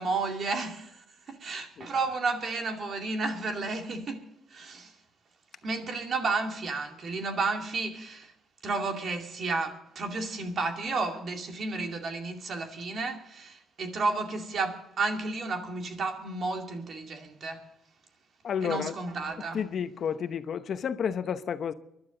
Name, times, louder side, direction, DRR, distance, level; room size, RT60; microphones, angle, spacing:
voice 1, 0.0-4.9 5.6-8.3 8.6-17.6 18.6-19.6, right 3 dB, 55° right, 2.4 m, -32 dB
voice 2, 18.4-19.0 19.5-21.7, left 7 dB, 60° left, 0.8 m, -31 dB
24.5 x 11.5 x 3.9 m
cardioid pair, 90°, 0 cm